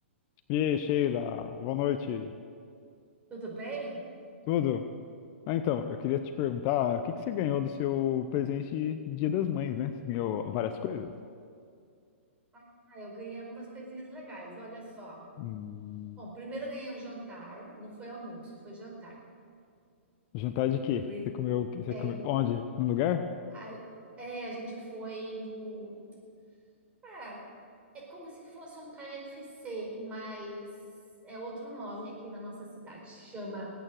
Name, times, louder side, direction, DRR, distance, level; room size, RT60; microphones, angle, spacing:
voice 1, 0.5-2.3 4.5-4.8 5.5-11.1 15.4-16.2 20.3-21.0 21.4-23.2, left 10 dB, 40° left, 9 dB, 0.7 m, -30 dB
voice 2, 3.3-4.0 12.5-15.3 16.2-19.2 21.0-21.3 21.9-22.2 23.5-23.8 24.2-26.0 27.0-27.5 27.9-30.7 31.2-33.7, right 1 dB, 20° right, -2 dB, 4.9 m, -41 dB
18.5 x 9.1 x 7.8 m, 2.3 s
hypercardioid pair, 125°, 7 cm